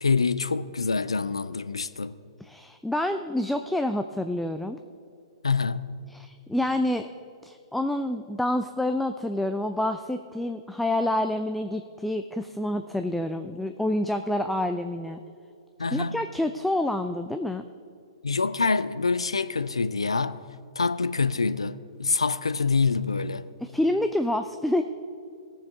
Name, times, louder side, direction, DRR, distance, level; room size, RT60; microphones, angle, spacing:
voice 1, 0.0-2.1 5.4-5.9 15.8-16.2 18.2-20.4 20.8-23.5, left 4 dB, 75° left, 0.4 m, -26 dB
voice 2, 2.4-4.8 6.1-7.1 7.4-15.2 15.9-17.6 23.6-24.8, left 1 dB, 5° left, 0.3 m, -28 dB
18.0 x 7.1 x 3.6 m
figure-of-eight pair, 115°, 3 cm